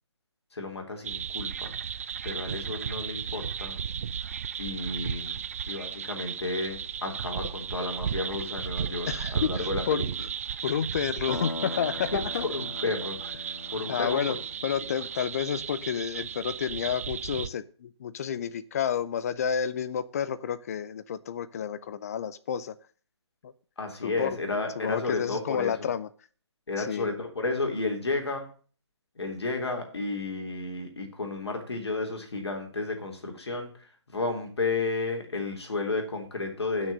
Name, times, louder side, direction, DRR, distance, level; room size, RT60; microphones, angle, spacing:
voice 1, 0.5-1.7 2.2-3.8 4.6-5.4 5.7-10.1 12.1-14.4 23.8-25.9 26.7-28.5 29.2-33.7 34.1-36.9, left 3 dB, 65° left, 3 dB, 3.6 m, -32 dB
sound 1, 1.0-17.5, right 8 dB, 30° right, 0.4 m, -35 dB
voice 2, 9.1-10.0 10.6-12.4 13.9-14.4 14.6-22.7 23.4-23.5 24.0-24.3 24.8-26.1 26.8-27.1, left 8 dB, 35° left, 14 dB, 0.7 m, -30 dB
sound 2, 11.3-15.6, left 3 dB, 85° left, 0.8 m, -41 dB
9.0 x 6.4 x 7.7 m, 0.40 s
figure-of-eight pair, 145°, 15 cm